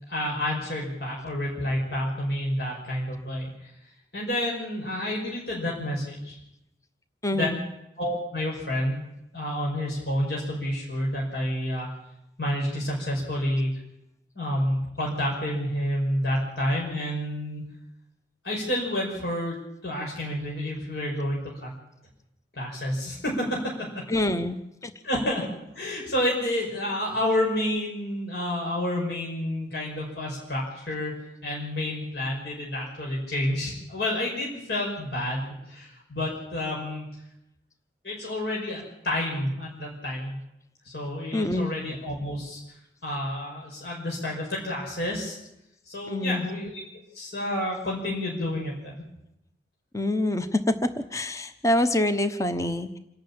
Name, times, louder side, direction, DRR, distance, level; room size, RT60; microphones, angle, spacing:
voice 1, 0.1-3.7 4.1-6.4 7.3-7.5 8.0-9.1 9.3-11.9 12.4-13.7 14.4-17.6 18.4-19.6 19.8-21.7 22.5-23.9 25.0-25.4 25.7-31.1 31.4-37.1 38.0-40.4 40.8-42.6 43.0-45.4 45.8-46.8 47.1-48.9, left 1 dB, 65° left, -3 dB, 5.9 m, -29 dB
voice 2, 7.2-7.6 24.1-24.6 24.8-24.9 41.3-41.7 46.1-46.5 49.9-53.0, left 1 dB, 15° left, 10 dB, 0.9 m, -26 dB
27.5 x 12.0 x 8.9 m, 0.84 s
head